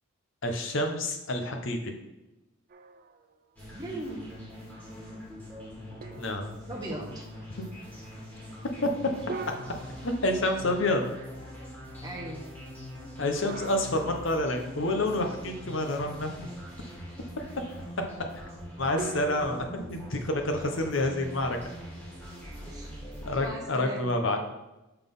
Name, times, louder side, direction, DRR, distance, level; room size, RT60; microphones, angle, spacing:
voice 1, 0.4-1.9 6.2-6.5 8.8-8.9 10.0-11.0 13.2-16.5 18.8-21.6 23.2-24.5, left 1 dB, 60° left, 4 dB, 0.8 m, -28 dB
sound 1, 2.7-3.6 4.1-4.2 6.0-6.9 9.3-10.9 13.5-14.8 19.0-19.5, right 4 dB, 40° right, 0.4 m, -42 dB
sound 2, 3.6-23.5, equal, 10° left, 1.9 m, -43 dB
voice 2, 3.7-4.2 6.7-7.2 12.0-12.4 22.7-23.0 23.4-24.1, right 1 dB, 15° right, -2 dB, 0.8 m, -38 dB
5.6 x 4.1 x 5.3 m, 0.98 s
head